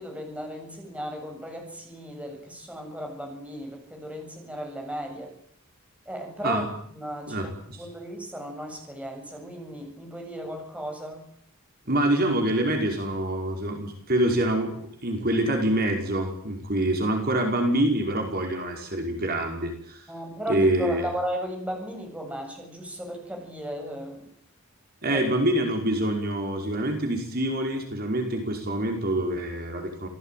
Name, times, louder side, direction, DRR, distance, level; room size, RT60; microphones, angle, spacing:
voice 1, 0.0-5.3 6.0-6.6 6.9-7.5 7.8-11.3 20.1-24.3 25.1-25.2, equal, 5° right, 2 dB, 7.9 m, -35 dB
voice 2, 7.3-7.8 11.9-20.1 20.5-21.1 25.0-30.1, right 1 dB, 45° right, 3 dB, 5.3 m, -26 dB
28.0 x 19.0 x 9.3 m, 0.64 s
head